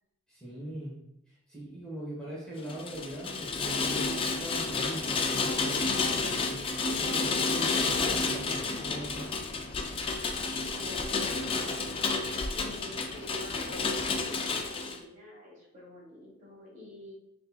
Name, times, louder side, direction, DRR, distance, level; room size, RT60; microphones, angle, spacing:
voice 1, 0.3-0.9 1.5-6.6 6.9-9.3, right 1 dB, 5° left, -6 dB, 1.2 m, -40 dB
Rain, 2.6-15.0, left 4 dB, 25° left, 0.3 m, -30 dB
voice 2, 10.7-11.7 12.5-17.1, left 1 dB, 40° right, -3 dB, 1.2 m, -48 dB
6.3 x 2.8 x 2.3 m, 0.82 s
head